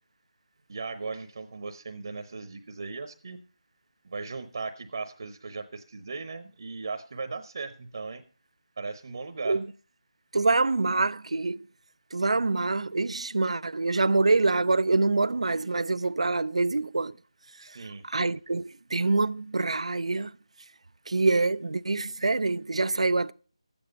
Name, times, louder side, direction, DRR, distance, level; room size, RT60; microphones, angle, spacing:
voice 1, 0.7-3.4 4.0-8.2 8.8-9.6 17.6-18.0, right 4 dB, 45° right, 0.8 m, -37 dB
voice 2, 10.3-11.6 12.1-17.2 18.0-20.3 21.1-23.3, right 3 dB, 80° right, 0.4 m, -25 dB
12.0 x 8.8 x 5.2 m
figure-of-eight pair, 170°, 3 cm